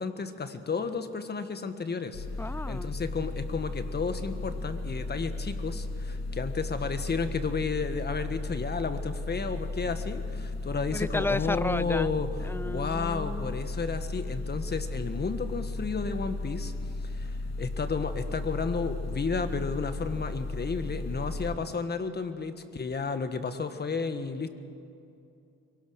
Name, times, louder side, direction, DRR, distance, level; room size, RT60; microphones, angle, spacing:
voice 1, 0.0-16.7 17.0-24.6, left 4 dB, 35° left, 9 dB, 1.5 m, -32 dB
sound 1, 2.1-21.6, left 2 dB, 60° left, 3.0 m, -35 dB
voice 2, 2.4-2.9 10.9-13.6, left 2 dB, 10° left, 18 dB, 0.4 m, -33 dB
24.0 x 18.0 x 6.5 m, 2.7 s
cardioid pair, 90°, 30 cm